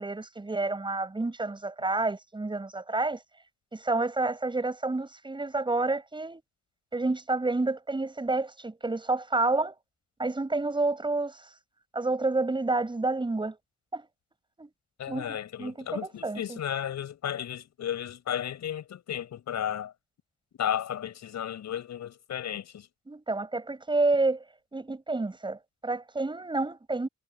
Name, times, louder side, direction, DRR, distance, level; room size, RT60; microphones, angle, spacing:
voice 1, 0.0-3.2 3.7-6.4 6.9-9.8 10.2-11.5 11.9-13.6 13.9-14.1 14.6-14.7 15.1-16.6 23.1-24.4 24.7-27.1, right 2 dB, 15° right, 6.5 m, -29 dB
voice 2, 15.0-19.9 20.6-22.9, left 10 dB, 70° left, 7.2 m, -34 dB
wide cardioid pair, 165°, 29 cm